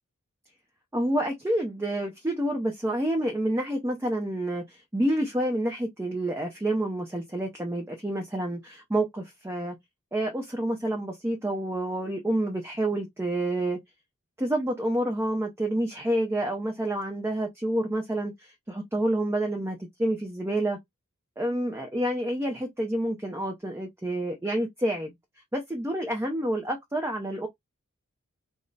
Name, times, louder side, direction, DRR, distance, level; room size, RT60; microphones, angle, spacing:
voice 1, 0.9-9.8 10.1-13.8 14.4-20.8 21.4-25.1 25.5-27.5, right 1 dB, 10° right, 0.6 m, -28 dB
3.6 x 2.0 x 3.9 m
head